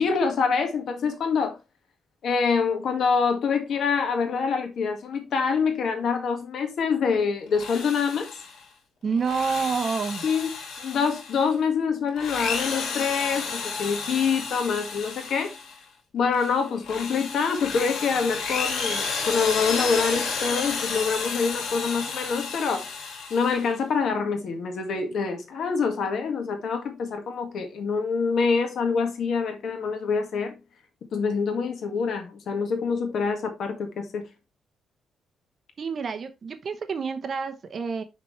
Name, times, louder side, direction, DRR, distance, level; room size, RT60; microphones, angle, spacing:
voice 1, 0.0-1.6 2.2-8.3 10.2-10.5 10.8-15.5 16.1-22.9 23.3-30.6 31.1-34.3, left 5 dB, 60° left, 1.8 m, -25 dB
Drill, 7.5-8.6 9.1-11.5 12.1-15.8 16.3-23.7, left 5 dB, 80° left, 2.7 m, -32 dB
voice 2, 9.0-10.2 35.8-38.0, right 5 dB, 40° right, 0.9 m, -28 dB
6.0 x 5.8 x 3.2 m
cardioid pair, 135°, 0 cm